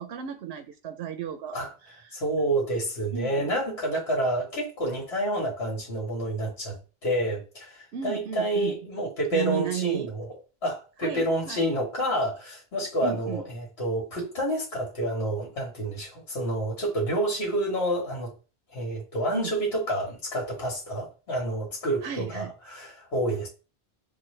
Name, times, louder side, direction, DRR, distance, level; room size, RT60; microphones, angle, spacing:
voice 1, 0.0-1.6 1.9-2.2 3.1-3.5 7.9-8.8 9.3-10.1 11.0-11.7 13.0-13.4 19.3-19.5 22.0-22.5, right 9 dB, 80° right, 0.8 m, -34 dB
voice 2, 2.1-10.3 10.6-18.3 18.7-23.5, right 1 dB, 80° left, 1.6 m, -29 dB
6.3 x 2.2 x 3.2 m
omnidirectional pair, 1.1 m